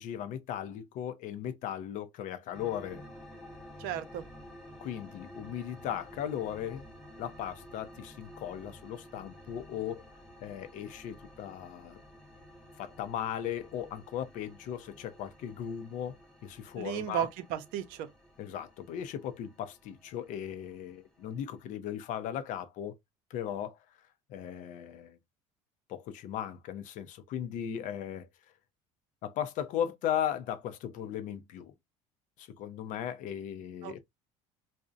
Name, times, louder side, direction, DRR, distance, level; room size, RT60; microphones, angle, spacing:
voice 1, 0.0-3.0 4.8-6.8 7.2-10.0 10.4-12.0 12.8-16.2 16.4-17.3 18.4-23.0 23.3-23.8 24.3-25.2 25.9-28.3 29.2-31.7 32.4-34.0, left 10 dB, 60° left, 0.5 m, -37 dB
sound 1, 2.5-21.7, equal, 5° left, 0.8 m, -52 dB
voice 2, 3.8-4.2 16.8-18.1 33.8-34.0, right 11 dB, 75° right, 0.5 m, -34 dB
2.6 x 2.0 x 2.4 m
supercardioid pair, 95°, 14 cm